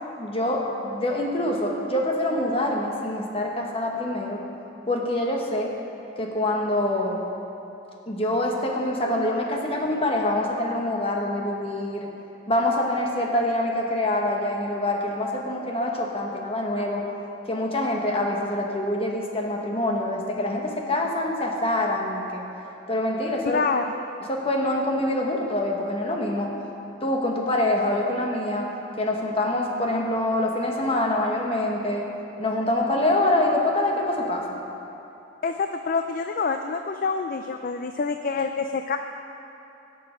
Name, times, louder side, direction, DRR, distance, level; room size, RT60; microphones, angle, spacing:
voice 1, 0.2-4.4 4.9-5.7 6.2-7.2 8.1-12.1 12.5-17.0 17.4-22.4 22.9-23.6 24.2-26.5 27.0-28.7 29.0-32.1 32.4-34.6, left 1 dB, 30° left, 0 dB, 1.2 m, -25 dB
voice 2, 23.5-23.8 35.4-39.0, left 5 dB, 45° left, 6 dB, 0.4 m, -26 dB
17.5 x 6.8 x 5.1 m, 2.9 s
head